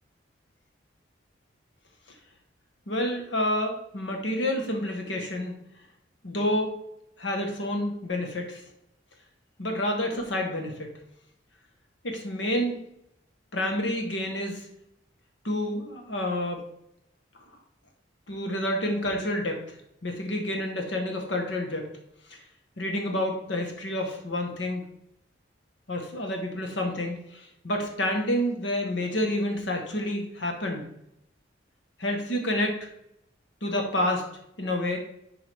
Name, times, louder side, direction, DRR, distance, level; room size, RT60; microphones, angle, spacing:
voice 1, 2.9-5.5 6.2-6.7 7.2-8.6 9.6-10.9 12.0-12.8 13.5-14.6 15.4-16.6 18.3-19.6 20.0-21.9 22.8-24.8 25.9-30.9 32.0-32.9 33.6-34.3 34.6-35.0, left 1 dB, 70° left, 3 dB, 1.3 m, -29 dB
7.5 x 4.7 x 3.5 m, 0.79 s
head